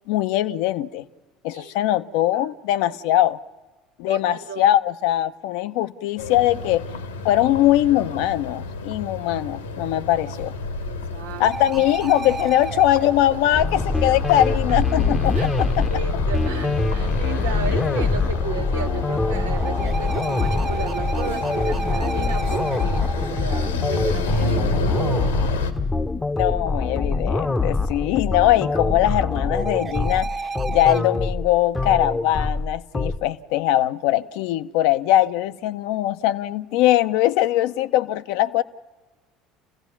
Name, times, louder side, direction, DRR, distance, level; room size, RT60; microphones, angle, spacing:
voice 1, 0.1-1.0 1.4-3.4 4.0-6.8 7.2-10.5 11.4-15.9 26.4-38.6, left 13 dB, 65° left, 0.7 m, -21 dB
voice 2, 4.1-4.6 10.8-11.5 14.7-14.8 15.3-15.5 15.9-25.3, right 6 dB, 75° right, 1.1 m, -34 dB
sound 1, 6.2-25.7, left 3 dB, 85° left, 1.6 m, -30 dB
sound 2, 11.5-14.6 18.1-24.6 28.1-31.0, right 4 dB, 30° right, 1.3 m, -33 dB
sound 3, 13.5-33.2, left 3 dB, 15° left, 0.9 m, -24 dB
28.5 x 16.0 x 7.1 m
figure-of-eight pair, 65°, 0 cm